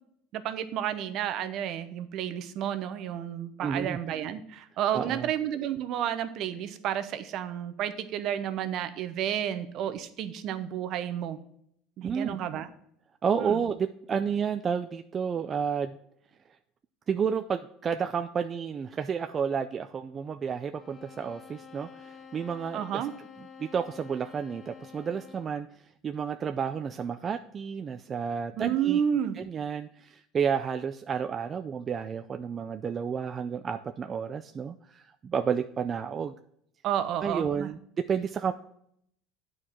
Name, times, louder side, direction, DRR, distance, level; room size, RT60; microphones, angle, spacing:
voice 1, 0.3-11.4 12.0-12.7 13.4-13.6 22.7-23.1 28.6-29.4 36.8-37.7, right 10 dB, 55° right, 11 dB, 0.8 m, -31 dB
voice 2, 3.6-4.0 4.9-5.3 12.0-12.4 13.2-16.0 17.1-23.0 23.6-25.7 26.0-29.0 29.4-36.4 37.2-38.5, right 7 dB, 30° right, 8 dB, 0.4 m, -31 dB
sound 1, 20.8-25.7, left 6 dB, 20° left, 0.8 m, -49 dB
8.8 x 4.7 x 5.6 m, 0.70 s
supercardioid pair, 125°, 0 cm